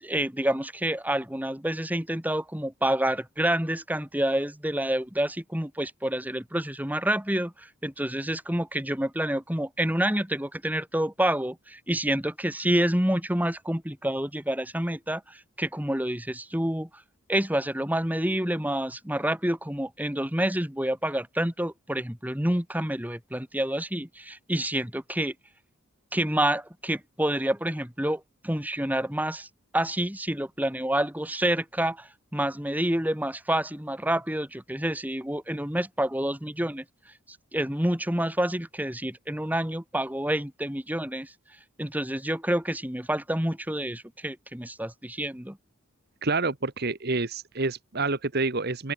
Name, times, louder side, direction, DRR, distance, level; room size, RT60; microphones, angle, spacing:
voice 1, 0.0-16.9 17.3-25.3 26.1-29.5 29.7-36.8 37.5-41.3 41.8-45.6, right 1 dB, 5° right, 2.2 m, -28 dB
voice 2, 46.2-48.9, right 3 dB, 45° right, 1.3 m, -28 dB
open air
head